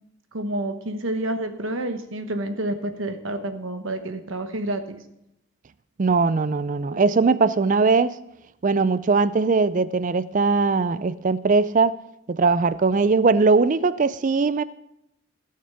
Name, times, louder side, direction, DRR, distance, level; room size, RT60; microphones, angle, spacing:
voice 1, 0.3-5.0, right 1 dB, 65° right, 7 dB, 1.2 m, -29 dB
voice 2, 6.0-8.2 8.6-12.0 12.3-14.6, right 4 dB, 35° right, 16 dB, 0.4 m, -20 dB
16.0 x 6.6 x 5.7 m, 0.84 s
head